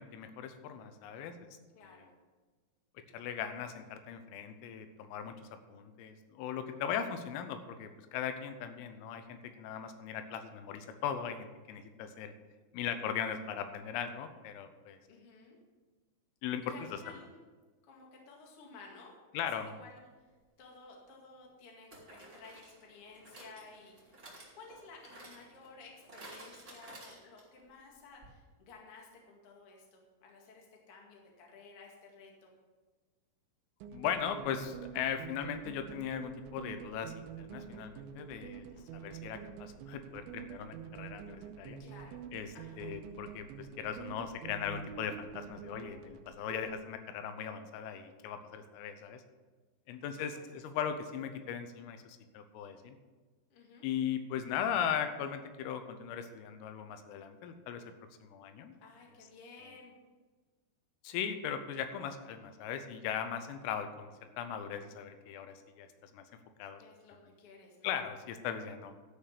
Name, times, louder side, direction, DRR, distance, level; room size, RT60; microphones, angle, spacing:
voice 1, 0.0-1.5 3.1-5.4 5.7-12.3 12.7-15.0 16.4-16.7 19.4-19.8 33.9-38.7 38.9-41.8 42.3-42.5 42.8-49.2 49.9-53.0 53.8-57.8 58.2-58.8 61.0-65.9 66.1-66.2 66.6-66.8 67.8-69.0, left 8 dB, 90° left, 8 dB, 3.5 m, -38 dB
voice 2, 1.7-2.1 15.1-15.6 16.6-17.4 17.8-19.1 19.6-20.1 20.6-24.2 24.5-32.5 38.5-38.9 41.8-42.1 42.5-42.9 46.0-46.1 50.0-50.4 53.5-53.9 58.8-59.9 66.8-68.0, left 4 dB, 50° left, -1 dB, 1.7 m, -55 dB
sound 1, 20.6-20.7 21.9-27.6 27.9-28.0 28.2-28.3, right 2 dB, 30° right, 0.9 m, -53 dB
sound 2, 33.8-46.7, right 8 dB, 80° right, 2.9 m, -47 dB
13.0 x 5.8 x 6.7 m, 1.3 s
omnidirectional pair, 5.8 m